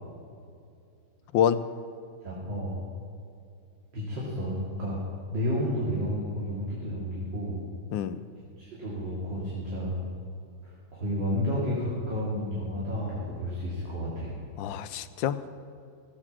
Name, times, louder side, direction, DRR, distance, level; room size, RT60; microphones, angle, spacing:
voice 1, 2.2-2.8 3.9-5.0 5.3-7.6 8.6-10.0 10.9-14.3, equal, 60° right, -6 dB, 3.2 m, -31 dB
voice 2, 7.9-8.2 14.6-15.5, left 9 dB, 75° left, 12 dB, 1.3 m, -27 dB
16.0 x 7.9 x 7.4 m, 2.5 s
omnidirectional pair, 2.2 m